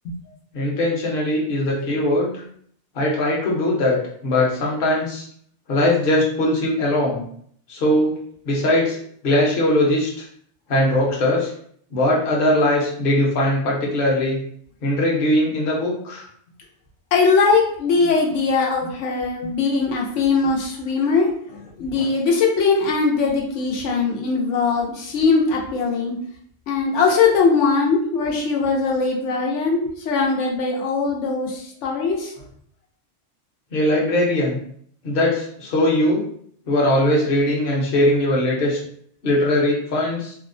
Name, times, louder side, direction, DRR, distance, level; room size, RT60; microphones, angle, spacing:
voice 1, 0.5-2.4 2.9-4.0 4.2-5.2 5.7-7.2 7.7-8.1 8.5-10.2 10.7-11.5 11.9-14.4 14.8-16.2 22.0-22.1 33.7-34.6 35.0-36.2 36.7-38.8 39.2-40.4, left 1 dB, 55° left, -3 dB, 0.9 m, -20 dB
voice 2, 17.1-21.3 21.8-26.1 26.7-32.3, left 4 dB, 90° left, -1 dB, 1.0 m, -20 dB
2.8 x 2.0 x 2.5 m, 0.62 s
omnidirectional pair, 1.2 m